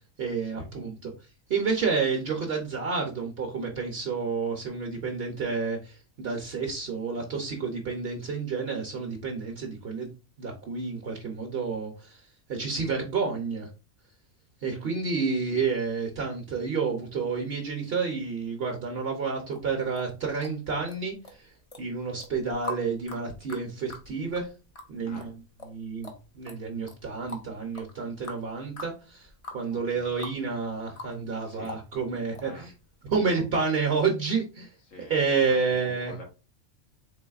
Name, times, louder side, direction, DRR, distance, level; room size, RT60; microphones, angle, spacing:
voice 1, 0.2-1.1 1.5-10.1 10.4-12.2 12.5-13.7 14.6-21.5 21.8-24.5 24.9-25.3 25.7-29.3 29.5-32.7 33.0-34.7 35.1-36.1, right 5 dB, 55° right, 0.9 m, -30 dB
sound 1, 19.5-21.0 21.2-21.8 22.2-30.4 30.7-31.4 31.7-32.5 33.1-33.3 33.7-33.8, left 2 dB, 35° left, 0.6 m, -42 dB
voice 2, 29.7-30.1 31.4-31.8 32.4-32.6 33.0-33.4 34.9-35.6 35.8-36.2, left 2 dB, 85° left, 1.6 m, -46 dB
4.0 x 3.4 x 2.3 m
omnidirectional pair, 1.3 m